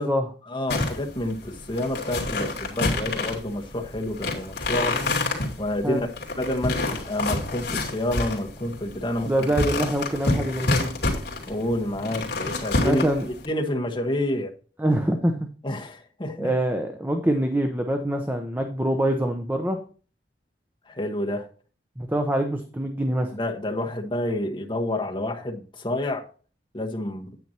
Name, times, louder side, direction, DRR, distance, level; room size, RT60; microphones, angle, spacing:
voice 1, 0.5-5.0 5.6-6.1 6.4-9.3 11.5-13.1 13.5-14.5 15.6-16.5 20.9-21.5 23.3-26.3 26.7-27.3, left 1 dB, 25° left, 1.4 m, -28 dB
sound 1, 0.7-13.5, left 2 dB, 65° left, 2.6 m, -28 dB
voice 2, 9.3-10.9 12.7-13.2 14.8-15.5 16.4-19.8 22.0-23.3, right 1 dB, 10° right, 0.8 m, -25 dB
9.3 x 9.2 x 2.9 m
head